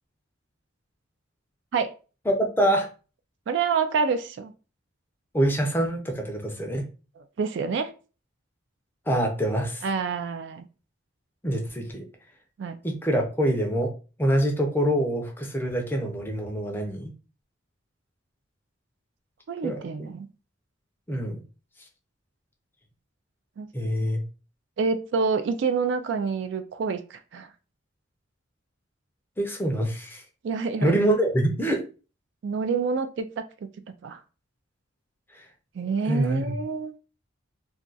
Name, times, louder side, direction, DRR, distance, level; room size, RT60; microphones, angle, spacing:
voice 1, 2.3-2.9 5.3-6.8 9.1-9.8 11.4-12.0 12.8-13.9 14.2-17.1 19.6-20.1 21.1-21.4 23.7-24.2 29.4-30.2 30.8-31.8 35.3-35.4 36.1-36.6, right 1 dB, 10° left, 2 dB, 0.5 m, -25 dB
voice 2, 3.5-4.5 7.2-7.9 9.8-10.7 12.6-12.8 19.5-20.3 23.6-23.7 24.0-24.1 24.8-27.5 30.4-30.9 32.4-33.4 34.0-34.2 35.7-36.9, right 5 dB, 60° right, 8 dB, 0.3 m, -27 dB
2.4 x 2.3 x 3.8 m, 0.35 s
head